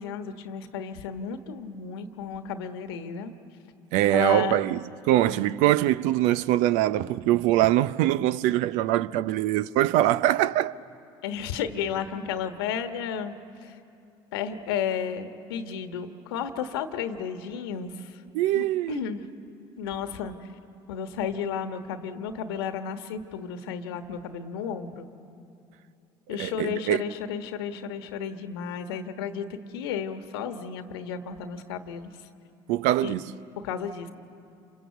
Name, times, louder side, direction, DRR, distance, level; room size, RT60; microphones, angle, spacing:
voice 1, 0.0-3.3 4.1-4.6 5.2-5.5 11.2-13.3 13.6-13.8 14.3-18.2 18.5-19.2 19.8-20.5 20.9-25.1 26.3-32.1 33.0-33.2 33.6-34.1, left 7 dB, 90° left, 1.3 m, -33 dB
voice 2, 3.9-10.7 18.3-19.1 26.4-27.0 32.7-33.3, right 14 dB, 75° right, 0.6 m, -23 dB
28.0 x 26.0 x 8.1 m
hypercardioid pair, 70°, 12 cm